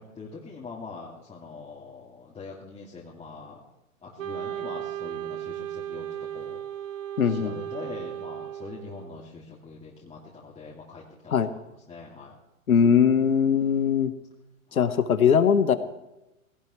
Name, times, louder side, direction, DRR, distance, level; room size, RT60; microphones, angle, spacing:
voice 1, 0.0-3.6 4.0-6.9 7.2-11.5 11.9-12.3 13.5-13.9 14.7-14.9, left 4 dB, 15° left, -5 dB, 2.4 m, -43 dB
Wind instrument woodwind instrument, 4.2-9.3, right 11 dB, 65° right, 1.1 m, -36 dB
voice 2, 7.2-7.6 11.3-11.5 12.7-14.1 14.7-15.7, left 7 dB, 85° left, 11 dB, 1.4 m, -21 dB
18.5 x 17.0 x 3.2 m, 0.94 s
hypercardioid pair, 115°, 42 cm